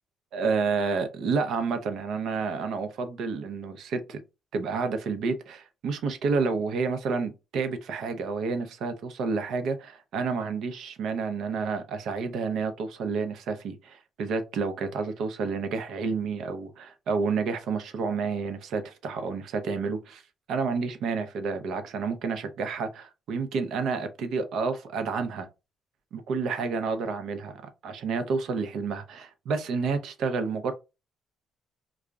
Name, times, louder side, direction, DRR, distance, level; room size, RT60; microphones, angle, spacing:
voice 1, 0.3-4.2 4.5-20.2 20.5-25.5 26.1-30.7, right 4 dB, 75° right, 0.5 m, -30 dB
2.3 x 2.0 x 3.4 m
cardioid pair, 90°, 0 cm